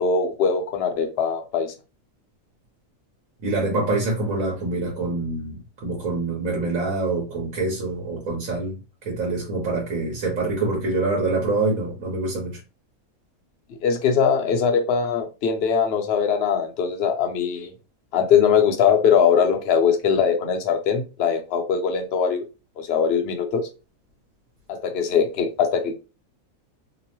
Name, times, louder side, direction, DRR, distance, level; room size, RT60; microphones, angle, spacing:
voice 1, 0.0-1.7 13.7-17.7 18.1-22.4 22.8-23.6 24.7-25.9, left 7 dB, 60° left, 4 dB, 0.7 m, -21 dB
voice 2, 3.4-12.5, right 2 dB, 70° right, -2 dB, 1.3 m, -25 dB
2.9 x 2.0 x 2.9 m, 0.31 s
omnidirectional pair, 1.5 m